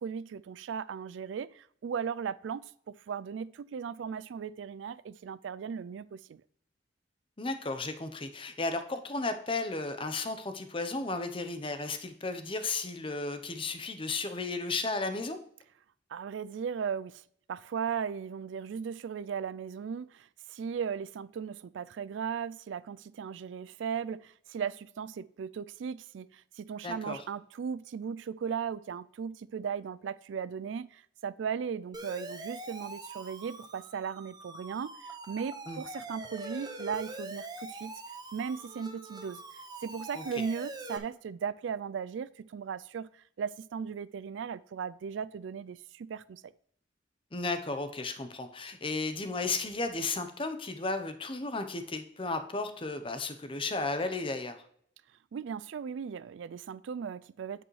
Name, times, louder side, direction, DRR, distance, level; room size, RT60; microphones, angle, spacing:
voice 1, 0.0-6.4 16.1-17.2 17.5-37.9 38.3-39.4 39.8-46.5 55.3-57.6, right 7 dB, 70° right, 0.3 m, -37 dB
voice 2, 7.4-15.4 26.8-27.2 35.7-35.8 40.1-40.4 47.3-54.6, left 3 dB, 30° left, 0.8 m, -34 dB
Siren, 31.9-41.0, right 2 dB, 20° right, 0.9 m, -43 dB
8.6 x 7.7 x 3.2 m
head